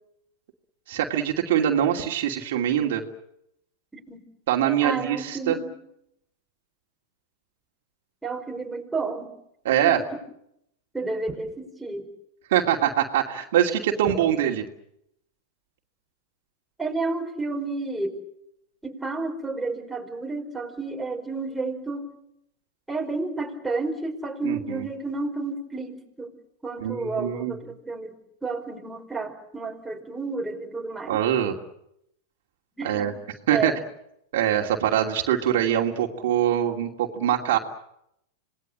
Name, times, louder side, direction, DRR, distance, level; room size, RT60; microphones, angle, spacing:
voice 1, 0.9-3.0 4.5-5.6 9.6-10.0 12.5-14.6 24.4-24.8 26.8-27.5 31.1-31.5 32.8-33.1 33.5-33.7 34.3-37.6, right 10 dB, 70° right, 1 dB, 2.8 m, -23 dB
voice 2, 3.9-4.2 4.8-5.7 8.2-9.3 9.8-9.9 10.9-12.1 16.8-18.1 18.8-22.1 22.9-26.4 26.6-28.2 28.4-31.2 32.8-33.1 33.5-33.8, right 3 dB, 5° right, 1 dB, 5.1 m, -31 dB
26.5 x 20.0 x 7.7 m, 0.80 s
hypercardioid pair, 130°, 0 cm